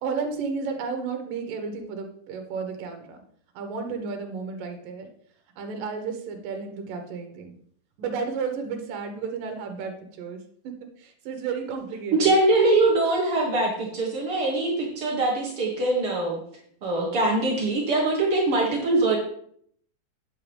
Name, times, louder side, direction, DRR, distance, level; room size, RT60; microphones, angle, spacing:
voice 1, 0.0-3.2 3.5-5.1 5.6-7.5 8.0-12.3, right 5 dB, 80° right, 5 dB, 2.9 m, -32 dB
voice 2, 12.2-16.4 16.8-19.2, right 2 dB, 50° right, -2 dB, 2.0 m, -23 dB
9.3 x 7.8 x 3.5 m, 0.63 s
omnidirectional pair, 3.9 m